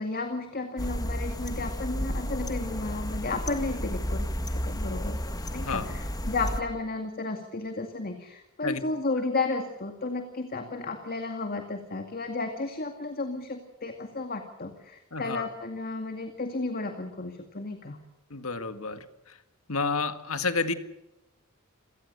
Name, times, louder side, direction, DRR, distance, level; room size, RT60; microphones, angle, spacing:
voice 1, 0.0-5.2 5.5-18.0, left 3 dB, 45° left, 6 dB, 2.2 m, -33 dB
sound 1, 0.8-6.6, equal, 20° left, 1.9 m, -32 dB
voice 2, 5.6-5.9 8.6-8.8 15.1-15.5 18.3-19.0 19.7-20.7, left 4 dB, 70° left, 9 dB, 1.9 m, -30 dB
27.5 x 18.5 x 6.8 m, 0.93 s
head